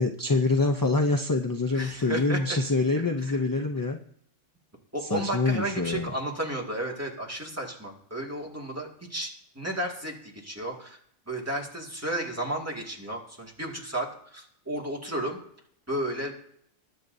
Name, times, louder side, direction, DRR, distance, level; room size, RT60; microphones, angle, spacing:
voice 1, 0.0-4.0 5.1-6.1, left 3 dB, 25° left, 3 dB, 0.5 m, -25 dB
voice 2, 1.7-2.6 3.0-3.4 4.9-11.0 11.3-15.4 15.9-16.3, right 1 dB, 10° right, -1 dB, 2.1 m, -33 dB
21.0 x 8.4 x 2.7 m, 0.66 s
omnidirectional pair, 1.2 m